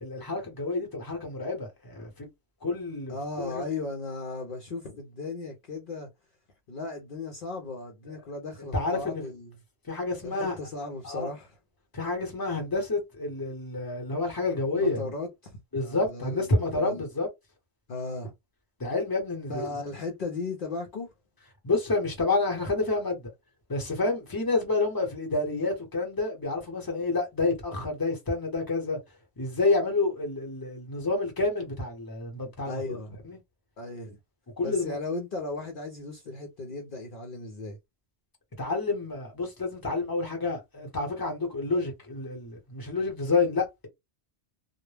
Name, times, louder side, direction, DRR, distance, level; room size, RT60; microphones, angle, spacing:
voice 1, 0.0-2.3 2.6-3.6 8.7-9.3 9.9-10.6 11.0-11.3 11.9-15.1 15.7-17.3 18.8-19.8 21.6-23.3 23.7-29.0 29.4-33.0 33.2-33.4 34.6-35.0 38.6-43.9, left 3 dB, 20° left, 0.9 m, -29 dB
voice 2, 3.1-6.1 6.7-9.5 10.2-11.5 14.7-17.1 17.9-18.3 19.5-21.1 32.6-33.2 33.8-34.2 34.6-37.8, left 3 dB, 60° left, 0.7 m, -36 dB
2.1 x 2.0 x 3.2 m
omnidirectional pair, 1.1 m